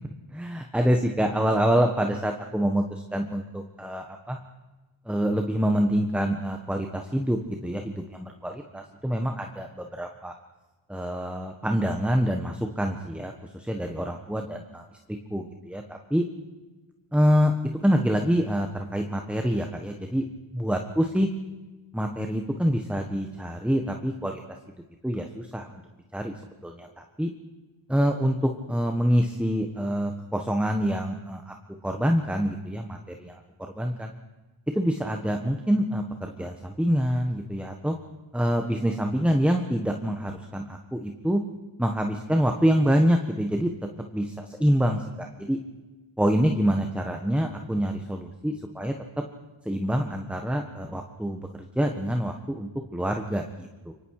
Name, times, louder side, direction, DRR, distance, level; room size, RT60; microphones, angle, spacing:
voice 1, 0.3-4.4 5.1-10.3 10.9-14.8 15.3-16.3 17.1-17.5 17.8-20.2 20.5-21.3 21.9-24.4 25.0-25.8 26.1-26.3 26.6-27.3 27.9-31.5 31.8-34.1 34.7-37.9 38.3-41.4 41.8-43.7 44.1-45.6 46.2-48.9 49.6-51.4 51.7-53.9, equal, ahead, 4 dB, 1.5 m, -26 dB
26.5 x 24.0 x 4.9 m, 1.2 s
wide cardioid pair, 65°, 49 cm